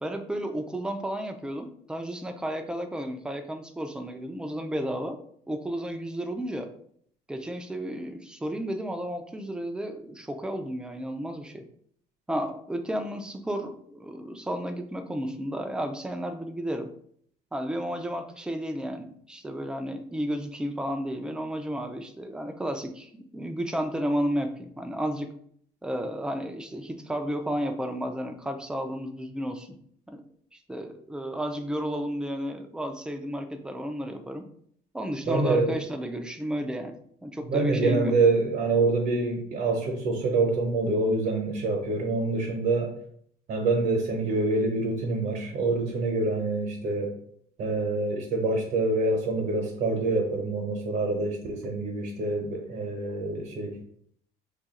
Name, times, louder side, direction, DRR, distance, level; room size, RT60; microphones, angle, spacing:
voice 1, 0.0-5.2 5.5-6.7 7.3-11.6 12.3-16.9 17.5-25.3 25.8-29.8 30.1-30.2 30.5-34.4 34.9-38.1, equal, 5° right, 6 dB, 0.4 m, -32 dB
voice 2, 35.3-35.7 37.5-42.9 43.5-47.1 47.6-53.8, right 3 dB, 70° right, 0 dB, 0.9 m, -26 dB
2.8 x 2.4 x 4.0 m, 0.63 s
cardioid pair, 110°, 17 cm